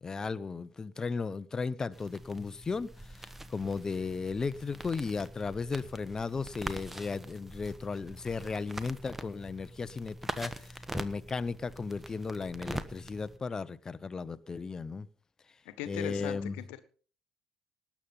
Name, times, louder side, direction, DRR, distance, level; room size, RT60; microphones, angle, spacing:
voice 1, 0.0-15.1 15.9-16.6, left 4 dB, 25° left, 0.9 m, -35 dB
sound 1, 1.9-13.4, right 1 dB, 10° right, 1.3 m, -43 dB
voice 2, 15.6-16.8, left 13 dB, 65° left, 1.4 m, -39 dB
19.0 x 7.4 x 5.6 m
figure-of-eight pair, 55°, 2 cm